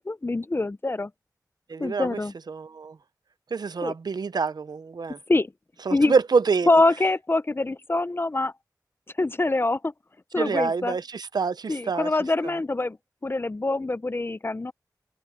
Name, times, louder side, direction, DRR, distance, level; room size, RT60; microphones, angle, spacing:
voice 1, 0.1-1.1 1.8-2.3 3.8-3.9 5.3-5.5 5.9-6.1 6.7-8.5 9.2-9.9 10.3-11.0 11.7-13.0 13.2-14.7, left 2 dB, 30° left, 0.7 m, -24 dB
voice 2, 1.7-2.2 2.5-3.0 3.5-5.2 5.9-6.7 10.4-12.1 12.4-12.5, right 5 dB, 70° right, 0.6 m, -26 dB
wide cardioid pair, 60°, 7 cm